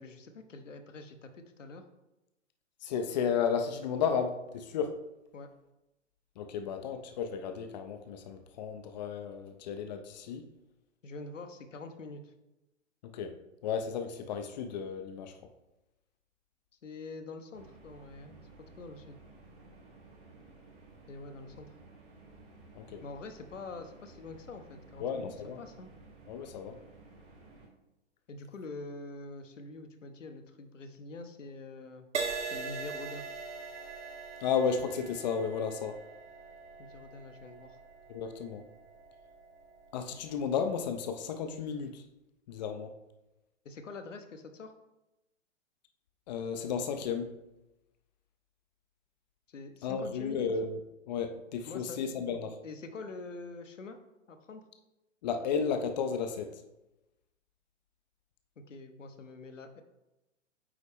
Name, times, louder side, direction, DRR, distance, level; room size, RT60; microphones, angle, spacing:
voice 1, 0.0-1.8 5.3-5.5 11.0-12.3 16.8-18.4 18.8-19.2 21.1-21.7 23.0-25.3 25.6-25.9 28.3-32.1 32.4-33.3 36.8-37.8 43.6-44.7 49.5-50.5 51.7-52.0 52.6-54.0 54.3-54.6 58.7-59.8, left 3 dB, 75° left, 7 dB, 1.0 m, -45 dB
voice 2, 2.8-5.0 6.4-10.4 13.0-13.3 13.6-15.3 22.7-23.0 25.0-25.6 26.3-26.8 34.4-36.0 38.1-38.6 39.9-42.0 42.5-42.9 46.3-47.3 49.8-50.8 51.1-52.6 55.2-56.5, left 6 dB, 35° left, 7 dB, 0.6 m, -33 dB
sound 1, 17.5-27.7, right 3 dB, 40° right, 2.4 m, -55 dB
Crash cymbal, 32.1-39.8 40.5-40.8, right 4 dB, 65° right, 1.1 m, -41 dB
8.5 x 4.1 x 3.4 m, 0.96 s
figure-of-eight pair, 115°, 38 cm